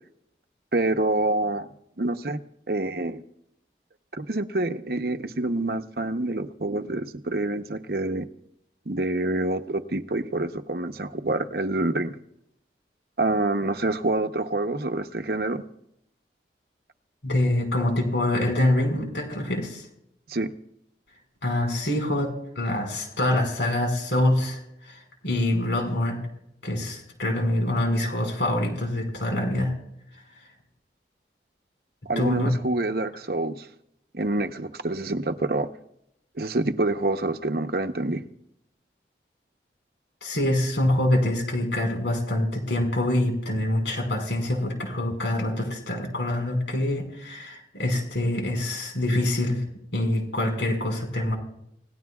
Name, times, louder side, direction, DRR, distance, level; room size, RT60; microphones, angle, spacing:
voice 1, 0.7-1.7 2.0-2.4 2.7-3.2 4.1-8.3 8.9-12.1 13.2-15.6 20.3-20.5 32.1-33.7 34.1-35.7 36.4-38.2, right 2 dB, 60° right, 0.9 m, -27 dB
voice 2, 17.2-19.9 21.4-26.3 26.6-29.7 30.1-30.5 32.2-32.5 40.2-49.6 49.9-51.4, left 1 dB, 80° left, 5.2 m, -25 dB
28.5 x 17.5 x 2.4 m
head